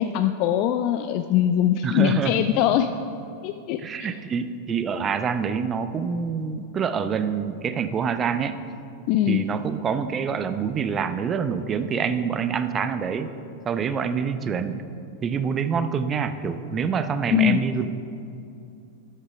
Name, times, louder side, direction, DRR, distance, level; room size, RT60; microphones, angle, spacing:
voice 1, 0.0-2.9 3.4-3.8 9.1-9.4 17.3-17.6, left 11 dB, 45° left, 8 dB, 0.4 m, -21 dB
voice 2, 1.8-2.4 3.8-8.6 9.3-13.3 13.7-14.8 15.2-17.9, right 6 dB, 25° right, 11 dB, 0.6 m, -26 dB
12.5 x 7.9 x 4.8 m, 2.6 s
figure-of-eight pair, 90°, 0 cm